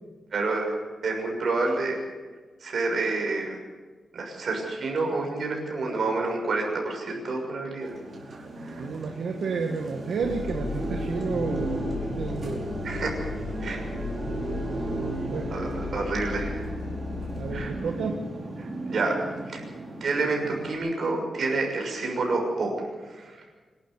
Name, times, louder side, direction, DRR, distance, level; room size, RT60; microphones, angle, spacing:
voice 1, 0.3-0.8 1.0-2.0 2.6-3.6 4.1-7.9 8.3-8.9 12.8-13.1 13.6-13.8 15.5-16.7 17.5-17.7 18.6-19.2 19.5-19.7 20.0-22.7 23.1-23.4, right 3 dB, 55° right, 1 dB, 6.4 m, -28 dB
sound 1, 7.8-20.7, right 2 dB, 40° right, 5.2 m, -35 dB
voice 2, 8.8-12.6 14.3-14.5 15.3-15.5 17.3-18.2, right 5 dB, 75° right, 3 dB, 1.7 m, -31 dB
sound 2, 10.2-17.7, left 4 dB, 60° left, 2.4 m, -35 dB
25.5 x 12.5 x 8.3 m, 1.4 s
wide cardioid pair, 160°, 0 cm